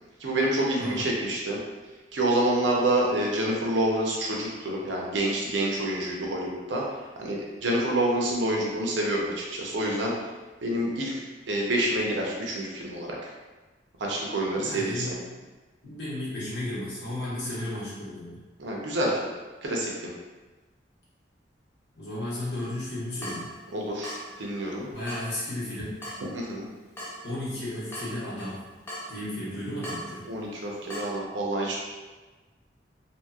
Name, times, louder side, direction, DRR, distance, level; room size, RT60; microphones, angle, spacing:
voice 1, 0.2-1.6 2.1-6.8 7.2-10.1 10.6-11.1 11.5-13.3 14.0-15.1 18.6-19.3 19.6-20.1 23.7-24.9 26.3-26.7 30.3-31.8, right 1 dB, 85° right, -2 dB, 0.6 m, -27 dB
voice 2, 0.8-1.1 14.6-15.5 15.8-18.4 21.9-23.5 24.9-26.0 27.2-28.6 29.1-30.3, left 1 dB, 70° left, -8 dB, 1.1 m, -34 dB
Water tap faucet / Drip, 22.6-31.2, equal, 10° left, 0.6 m, -43 dB
2.9 x 2.7 x 2.3 m, 1.2 s
head